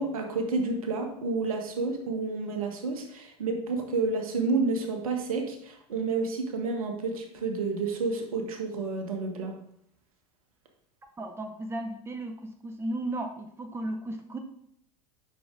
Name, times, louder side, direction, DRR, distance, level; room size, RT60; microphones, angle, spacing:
voice 1, 0.0-9.5, right 3 dB, 65° right, 4 dB, 1.6 m, -30 dB
voice 2, 11.2-12.4 12.6-14.4, right 1 dB, 15° right, 5 dB, 0.9 m, -34 dB
10.0 x 5.9 x 3.8 m, 0.71 s
figure-of-eight pair, 75°, 19 cm